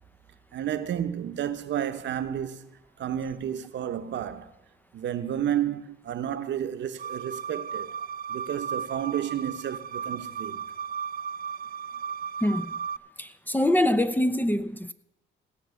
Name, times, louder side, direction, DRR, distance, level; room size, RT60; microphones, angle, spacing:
voice 1, 0.5-2.7 3.0-4.5 4.9-8.0 8.3-10.7, right 10 dB, 65° right, 1.0 m, -31 dB
sound 1, 7.0-13.0, right 7 dB, 45° right, 0.5 m, -35 dB
voice 2, 12.4-12.8 13.2-14.9, left 1 dB, 10° left, 0.7 m, -24 dB
16.5 x 6.1 x 8.2 m
cardioid pair, 90°, 20 cm